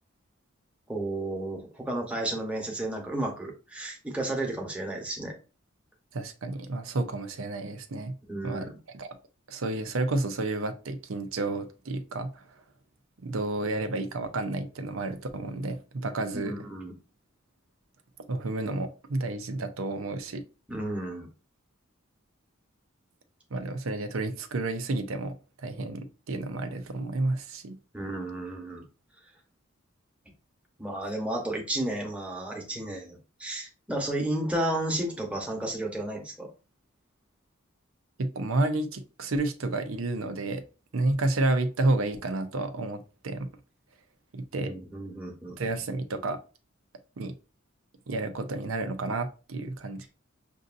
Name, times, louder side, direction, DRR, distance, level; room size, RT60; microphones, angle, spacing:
voice 1, 0.9-5.3 8.3-8.7 16.3-16.9 20.7-21.3 27.9-28.8 30.8-36.5 44.6-45.6, right 1 dB, 5° right, 1.1 m, -32 dB
voice 2, 6.1-8.1 8.4-9.2 9.5-12.5 13.2-16.5 18.3-20.4 23.5-27.8 38.2-40.6 40.9-43.5 44.3-44.7 45.6-46.4 47.2-47.3 48.1-50.1, right 2 dB, 85° right, 0.6 m, -30 dB
6.2 x 2.6 x 2.5 m
head